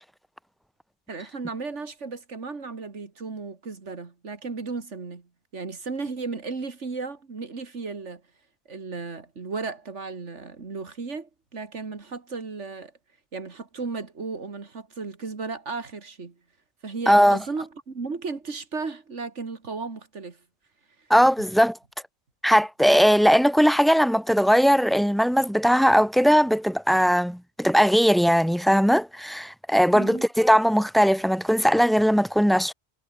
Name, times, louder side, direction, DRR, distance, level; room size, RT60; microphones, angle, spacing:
voice 1, 1.1-8.2 8.7-12.9 13.3-16.3 16.8-20.4 29.9-30.3, right 4 dB, 85° right, 2.7 m, -35 dB
voice 2, 17.1-17.4 21.1-21.8 22.4-32.7, equal, ahead, 0.9 m, -19 dB
omnidirectional pair, 1.2 m